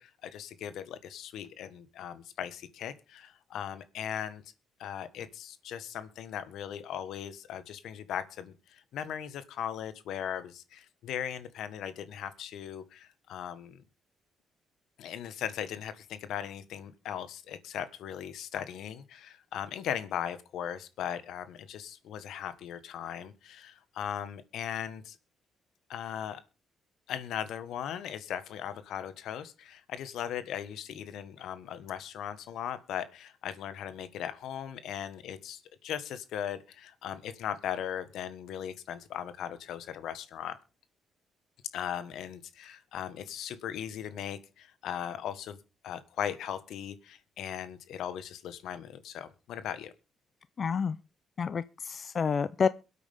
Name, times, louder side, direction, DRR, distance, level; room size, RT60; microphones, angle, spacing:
voice 1, 0.0-4.4 4.8-13.8 15.0-25.2 25.9-26.4 27.1-40.6 41.7-45.6 45.8-49.9, left 9 dB, 80° left, 1.4 m, -38 dB
voice 2, 50.6-51.0 51.4-52.7, left 6 dB, 45° left, 0.6 m, -29 dB
23.0 x 8.4 x 3.6 m
cardioid pair, 90°, 0 cm